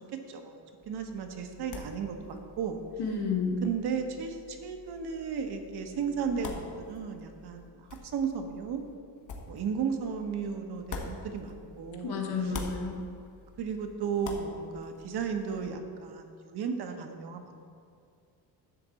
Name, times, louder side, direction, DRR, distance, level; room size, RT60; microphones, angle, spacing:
voice 1, 0.3-0.6 0.9-2.8 3.6-7.7 8.1-8.8 9.5-12.2 13.6-17.6, right 6 dB, 70° right, 5 dB, 1.1 m, -34 dB
sound 1, 0.8-12.0 12.3-15.7, left 4 dB, 50° left, 1.2 m, -46 dB
voice 2, 3.0-3.6 12.0-13.0, left 5 dB, 70° left, 0 dB, 1.6 m, -31 dB
11.0 x 4.0 x 7.5 m, 2.3 s
cardioid pair, 160°, 40 cm